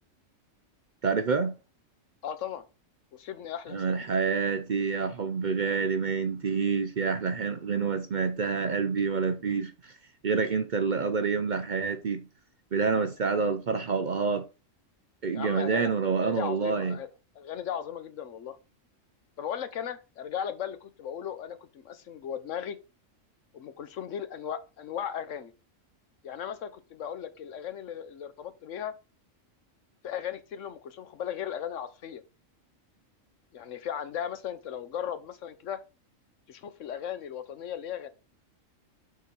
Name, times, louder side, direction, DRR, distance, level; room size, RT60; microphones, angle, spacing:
voice 1, 1.0-1.5 3.7-9.9 10.2-12.3 12.7-14.4 15.2-17.0, right 5 dB, 50° right, 0.6 m, -27 dB
voice 2, 2.2-2.6 3.1-4.1 15.3-17.1 17.3-18.6 19.4-22.8 23.5-25.5 26.2-28.9 30.0-32.2 33.5-35.8 36.5-38.1, left 9 dB, 70° left, 1.2 m, -36 dB
6.4 x 4.0 x 5.3 m
omnidirectional pair, 1.3 m